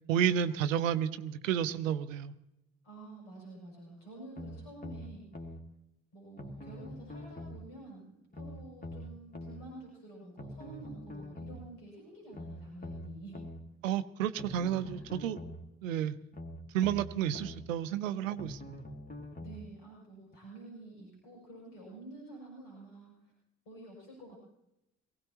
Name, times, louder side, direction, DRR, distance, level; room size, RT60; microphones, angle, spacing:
voice 1, 0.1-2.3 13.8-15.4 15.8-16.2 16.7-18.7, right 9 dB, 80° right, 12 dB, 0.6 m, -31 dB
voice 2, 2.8-5.2 6.1-8.1 8.3-13.4 14.8-15.0 19.4-23.3 23.6-24.4, right 2 dB, 70° left, -2 dB, 6.7 m, -49 dB
sound 1, 4.4-5.6 6.4-7.6 8.3-9.6 10.4-11.6 12.3-13.6 14.4-15.6 16.3-17.6 18.4-19.6 20.3-20.4, left 1 dB, 25° left, 2.0 m, -44 dB
19.5 x 16.5 x 3.0 m, 0.87 s
figure-of-eight pair, 45°, 39 cm